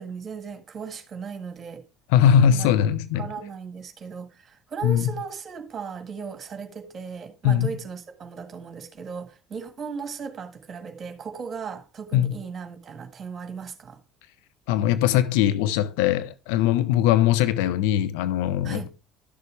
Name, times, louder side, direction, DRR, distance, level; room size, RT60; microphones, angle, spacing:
voice 1, 0.0-1.9 2.4-2.7 3.1-14.0 18.6-18.9, right 6 dB, 35° right, 1.6 m, -37 dB
voice 2, 2.1-3.3 4.8-5.0 7.4-7.7 12.1-12.3 14.7-18.9, left 10 dB, 65° left, 0.6 m, -21 dB
11.5 x 6.6 x 3.3 m
figure-of-eight pair, 60°, 0 cm